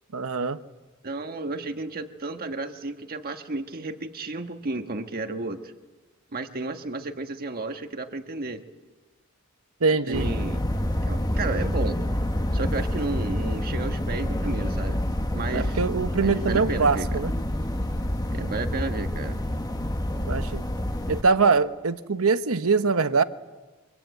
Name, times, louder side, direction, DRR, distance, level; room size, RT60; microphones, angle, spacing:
voice 1, 0.1-0.6 9.8-10.3 15.5-17.3 20.2-20.7 21.1-23.2, right 4 dB, 70° right, 11 dB, 1.0 m, -23 dB
voice 2, 1.0-5.7 6.3-8.6 10.1-10.6 11.0-12.0 12.5-15.0 15.3-15.8 16.2-17.2 18.3-19.4, right 3 dB, 45° right, 6 dB, 1.4 m, -32 dB
sound 1, 10.1-21.2, left 1 dB, 20° left, 1.4 m, -28 dB
25.0 x 25.0 x 8.2 m, 1.2 s
head